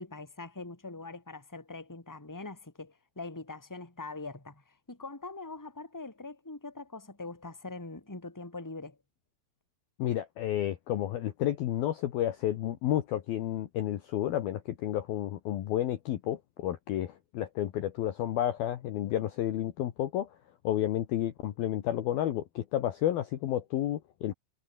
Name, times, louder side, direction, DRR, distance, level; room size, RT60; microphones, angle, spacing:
voice 1, 0.0-9.0, left 3 dB, 5° left, 3.1 m, -43 dB
voice 2, 10.0-20.3 20.6-24.3, left 12 dB, 65° left, 2.7 m, -31 dB
omnidirectional pair, 5.5 m